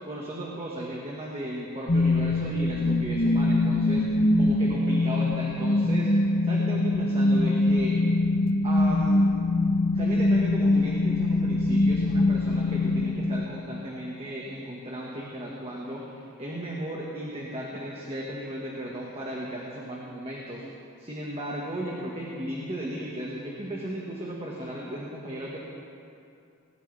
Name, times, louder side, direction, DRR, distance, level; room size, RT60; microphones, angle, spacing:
voice 1, 0.0-8.0 8.6-9.3 9.9-20.6 21.0-25.6, equal, 30° right, -3 dB, 1.7 m, -35 dB
sound 1, 1.9-13.9, left 2 dB, 45° left, 0.8 m, -23 dB
19.5 x 18.5 x 3.5 m, 2.6 s
head